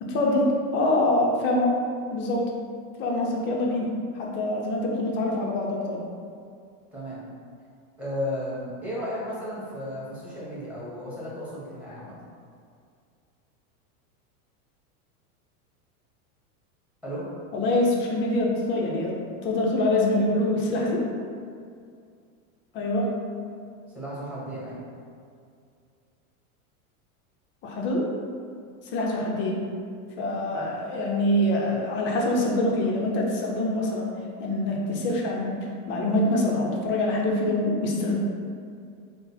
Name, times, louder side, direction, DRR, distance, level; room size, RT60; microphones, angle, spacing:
voice 1, 0.0-1.8 2.1-2.5 3.0-6.0 17.5-19.2 19.4-21.1 22.7-23.1 27.6-28.1 28.9-29.7 30.2-34.1 34.4-35.6 35.9-38.2, left 1 dB, 30° left, -1 dB, 0.4 m, -25 dB
voice 2, 6.9-7.2 8.0-12.1 17.0-17.2 23.9-24.8, equal, 5° right, -8 dB, 1.0 m, -34 dB
3.8 x 2.0 x 4.2 m, 2.3 s
supercardioid pair, 125°, 44 cm